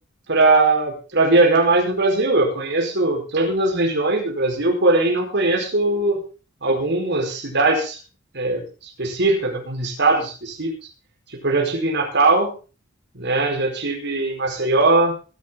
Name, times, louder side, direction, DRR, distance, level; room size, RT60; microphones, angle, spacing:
voice 1, 0.3-6.2 6.6-8.0 8.3-8.6 9.0-10.7 11.4-12.5 13.1-15.2, right 2 dB, 60° right, 0 dB, 4.7 m, -20 dB
22.5 x 10.5 x 3.9 m, 0.35 s
head